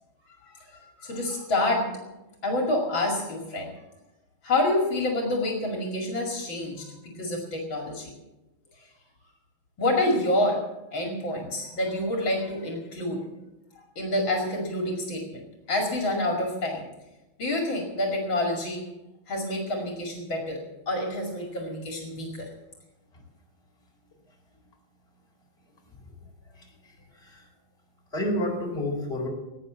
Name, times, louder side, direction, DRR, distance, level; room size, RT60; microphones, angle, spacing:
voice 1, 0.4-2.1 2.4-3.7 4.4-8.1 8.7-8.9 9.8-13.3 13.7-16.8 17.4-18.9 19.3-22.5, left 1 dB, 70° left, 0 dB, 3.1 m, -28 dB
voice 2, 26.5-27.5 28.1-29.3, left 1 dB, 30° left, -1 dB, 4.4 m, -31 dB
18.0 x 9.3 x 7.5 m, 1.0 s
omnidirectional pair, 2.2 m